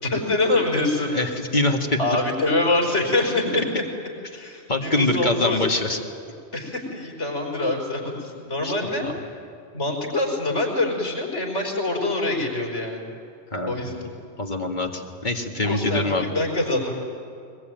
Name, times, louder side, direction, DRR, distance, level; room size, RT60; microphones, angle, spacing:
voice 1, 0.0-1.1 2.0-3.8 4.3-5.6 6.5-9.1 9.7-13.1 13.7-14.1 15.6-16.9, left 2 dB, 85° left, 0 dB, 5.2 m, -25 dB
voice 2, 1.1-2.0 4.7-6.0 8.6-8.7 9.0-9.1 13.5-13.8 14.4-16.3, left 2 dB, 40° left, 2 dB, 2.1 m, -24 dB
22.0 x 21.5 x 9.2 m, 2.5 s
omnidirectional pair, 1.2 m